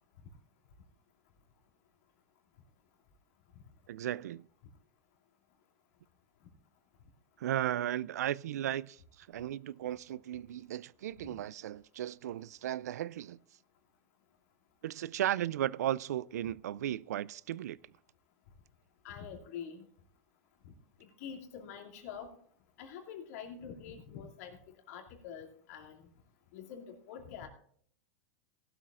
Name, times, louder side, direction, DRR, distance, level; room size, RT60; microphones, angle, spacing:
voice 1, 3.9-4.5 7.4-13.4 14.8-17.8, right 12 dB, 90° right, 0.3 m, -35 dB
voice 2, 19.0-19.8 20.6-20.7 21.2-22.4 22.8-24.6 24.9-26.1 26.5-27.5, left 7 dB, 70° left, 2.5 m, -46 dB
18.0 x 12.0 x 2.5 m
supercardioid pair, 125°, 9 cm